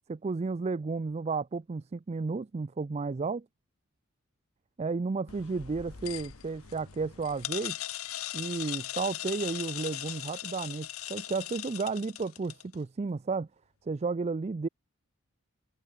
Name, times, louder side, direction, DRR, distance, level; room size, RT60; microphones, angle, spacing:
voice 1, 0.1-3.4 4.8-7.8 8.3-13.5 13.9-14.7, right 4 dB, 30° right, 0.4 m, -33 dB
sound 1, 5.3-12.7, left 13 dB, 75° left, 1.1 m, -39 dB
head